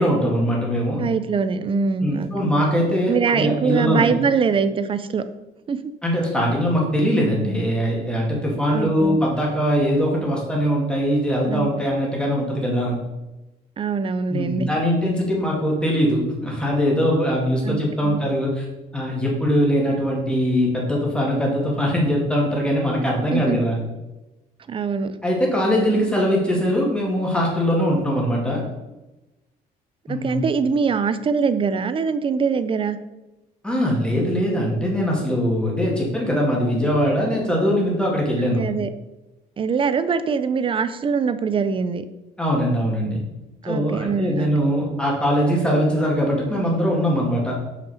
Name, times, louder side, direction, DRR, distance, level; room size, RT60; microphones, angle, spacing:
voice 1, 0.0-1.0 2.0-4.1 6.0-13.0 14.3-18.6 18.9-23.8 25.2-28.6 30.1-30.4 33.6-38.6 42.4-43.2 43.7-47.6, equal, 5° left, -3 dB, 2.1 m, -21 dB
voice 2, 1.0-2.6 3.1-5.2 5.7-5.9 8.7-9.2 11.5-11.7 13.8-14.7 17.6-18.2 23.3-23.7 24.7-25.2 30.1-33.0 38.5-38.9 39.6-42.0 43.6-44.5, right 5 dB, 30° right, 12 dB, 0.5 m, -23 dB
5.5 x 5.1 x 5.0 m, 1.0 s
cardioid pair, 110°, 17 cm